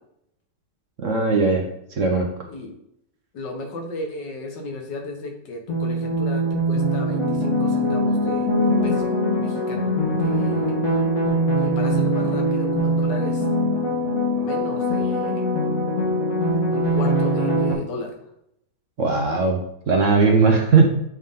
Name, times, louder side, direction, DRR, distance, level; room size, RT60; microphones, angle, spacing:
voice 1, 1.0-1.6 2.0-2.3 19.0-19.6 19.9-20.8, right 4 dB, 50° right, 2 dB, 1.1 m, -18 dB
voice 2, 3.3-9.1 9.4-9.9 10.2-10.7 11.6-13.5 14.3-15.4 16.7-18.1, left 2 dB, 80° left, 3 dB, 1.9 m, -34 dB
sound 1, 5.7-17.7, equal, 55° left, 1.9 m, -22 dB
7.8 x 4.1 x 3.6 m, 0.78 s
omnidirectional pair, 1.9 m